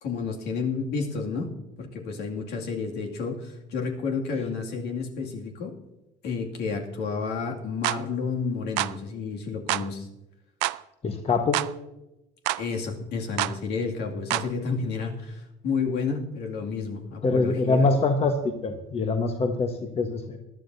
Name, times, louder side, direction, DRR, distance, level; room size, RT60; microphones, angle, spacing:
voice 1, 0.0-1.5 1.8-5.7 6.2-10.1 12.6-17.9, left 5 dB, 65° left, 0 dB, 2.4 m, -30 dB
sound 1, 7.8-8.0 8.8-9.0 9.7-9.9 10.6-10.8 11.5-11.7 12.5-12.6 13.4-13.6 14.3-14.5, right 20 dB, 80° right, 0.4 m, -26 dB
voice 2, 11.0-11.6 17.2-20.4, left 3 dB, 35° left, 4 dB, 1.3 m, -24 dB
20.0 x 12.0 x 2.7 m, 0.93 s
supercardioid pair, 95°, 18 cm